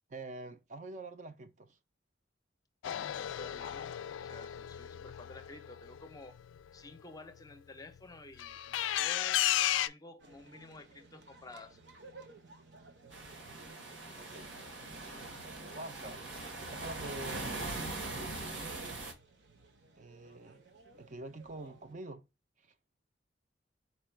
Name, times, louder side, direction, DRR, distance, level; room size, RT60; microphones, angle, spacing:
voice 1, 0.1-1.8 14.2-14.6 15.7-16.2 16.6-19.0 20.0-20.6 21.0-22.3 22.6-22.7, right 2 dB, 40° right, 0.5 m, -46 dB
sound 1, 2.8-6.6 8.4-9.9, left 12 dB, 85° left, 0.3 m, -34 dB
voice 2, 2.8-6.4 6.7-11.8, left 2 dB, 20° left, 0.5 m, -52 dB
sound 2, 10.2-21.9, right 3 dB, 70° right, 0.9 m, -57 dB
sound 3, 13.1-19.1, right 2 dB, 85° right, 1.4 m, -41 dB
4.4 x 2.3 x 4.4 m
head